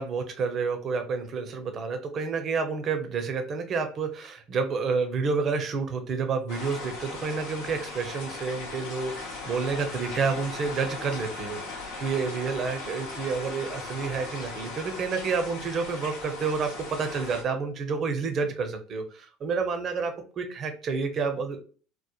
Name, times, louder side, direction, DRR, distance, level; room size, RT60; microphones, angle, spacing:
voice 1, 0.0-21.6, right 5 dB, 45° right, 7 dB, 0.6 m, -29 dB
sound 1, 6.5-17.4, left 3 dB, 70° left, 0.8 m, -38 dB
3.0 x 2.1 x 2.3 m, 0.39 s
hypercardioid pair, 75°, 0 cm